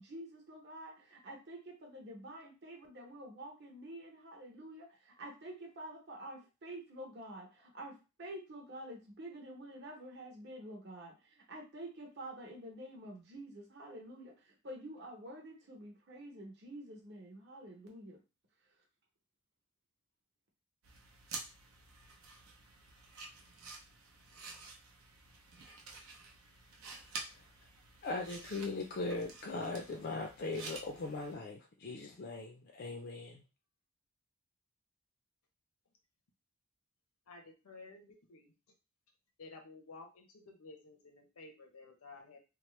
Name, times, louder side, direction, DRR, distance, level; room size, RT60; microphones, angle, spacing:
voice 1, 0.0-18.2, right 1 dB, 50° right, 0 dB, 0.9 m, -48 dB
sound 1, 20.8-31.3, right 4 dB, 80° right, 0.7 m, -50 dB
voice 2, 28.0-33.4, left 3 dB, 45° left, 1 dB, 0.4 m, -39 dB
voice 3, 37.3-38.5 39.4-42.4, left 3 dB, 85° left, 4 dB, 0.7 m, -53 dB
3.0 x 2.0 x 3.1 m, 0.29 s
head